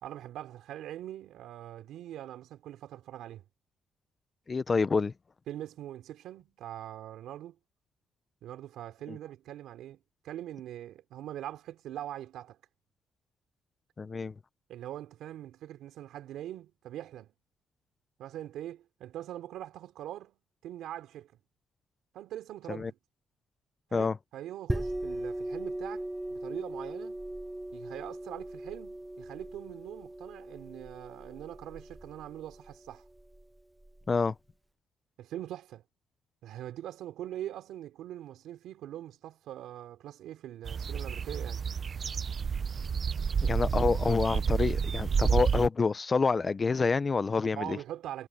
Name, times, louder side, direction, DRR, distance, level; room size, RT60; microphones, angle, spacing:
voice 1, 0.0-3.4 5.5-7.6 8.4-10.0 10.2-12.6 14.7-17.3 18.2-20.4 20.6-21.3 22.1-23.0 23.9-27.2 27.7-33.0 35.2-35.8 36.4-41.7 47.5-48.3, right 12 dB, 80° right, 3.4 m, -42 dB
voice 2, 4.5-5.1 9.1-9.2 14.0-14.3 22.7-22.9 23.9-24.2 34.1-34.3 43.4-47.8, left 4 dB, 30° left, 0.8 m, -27 dB
sound 1, 24.7-34.0, right 1 dB, 10° right, 0.4 m, -39 dB
sound 2, 40.6-45.7, right 6 dB, 45° right, 0.8 m, -29 dB
cardioid pair, 90°, 0 cm